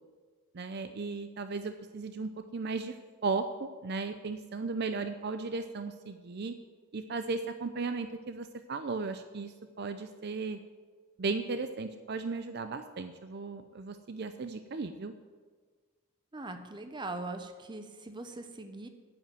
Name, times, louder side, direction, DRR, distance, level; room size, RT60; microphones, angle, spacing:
voice 1, 0.5-2.9 3.2-6.5 6.9-10.6 11.2-15.1, right 4 dB, 55° right, 9 dB, 0.5 m, -36 dB
voice 2, 16.3-18.9, right 2 dB, 20° right, 7 dB, 0.8 m, -41 dB
9.2 x 7.8 x 7.8 m, 1.5 s
head